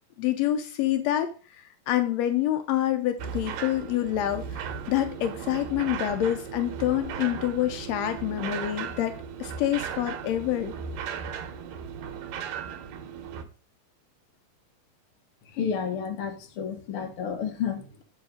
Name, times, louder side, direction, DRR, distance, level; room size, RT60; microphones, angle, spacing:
voice 1, 0.2-10.7, left 12 dB, 90° left, 1.5 m, -27 dB
sound 1, 3.2-13.5, right 7 dB, 80° right, 2.5 m, -36 dB
voice 2, 15.5-18.0, left 7 dB, 60° left, 1.5 m, -31 dB
9.1 x 4.8 x 4.9 m
omnidirectional pair, 3.9 m